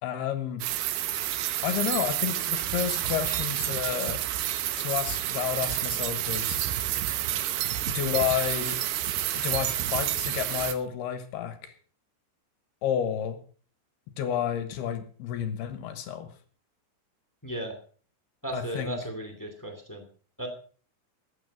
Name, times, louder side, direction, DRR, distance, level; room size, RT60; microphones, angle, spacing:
voice 1, 0.0-0.6 1.6-4.2 4.8-6.7 7.9-8.8 9.3-11.7 12.8-13.4 14.2-16.3 18.5-19.0, left 9 dB, 75° left, 9 dB, 3.1 m, -30 dB
sound 1, 0.6-10.7, right 12 dB, 75° right, 2.7 m, -29 dB
voice 2, 17.4-17.8 18.4-20.0 20.4-20.5, right 1 dB, 15° left, 5 dB, 0.7 m, -35 dB
15.0 x 9.6 x 5.3 m, 0.43 s
omnidirectional pair, 5.0 m